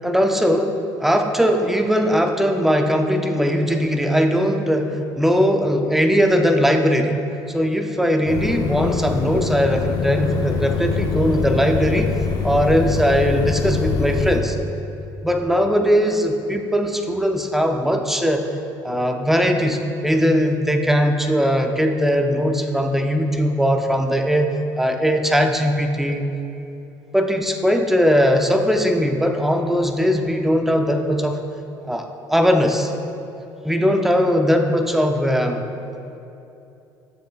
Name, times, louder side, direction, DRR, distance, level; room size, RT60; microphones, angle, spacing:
voice 1, 0.0-7.2 7.5-12.1 12.4-14.6 15.2-18.5 18.8-24.5 24.8-26.3 27.1-31.4 31.9-32.9 33.6-35.7, equal, 5° right, 5 dB, 0.5 m, -19 dB
sound 1, 8.3-14.4, left 5 dB, 50° left, 0.8 m, -24 dB
9.4 x 7.4 x 2.4 m, 2.8 s
cardioid pair, 115°, 9 cm